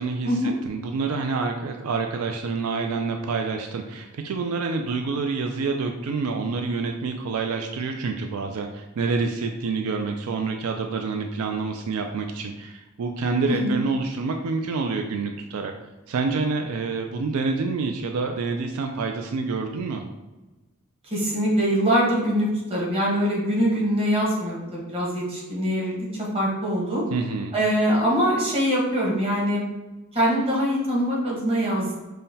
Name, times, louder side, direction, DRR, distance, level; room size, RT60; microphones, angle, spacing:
voice 1, 0.0-15.7 16.1-20.0 27.1-27.5, right 4 dB, 80° right, 4 dB, 0.4 m, -27 dB
voice 2, 21.1-27.0 27.5-29.6 30.1-32.1, equal, 25° right, -5 dB, 1.1 m, -23 dB
5.5 x 2.2 x 2.7 m, 1.1 s
head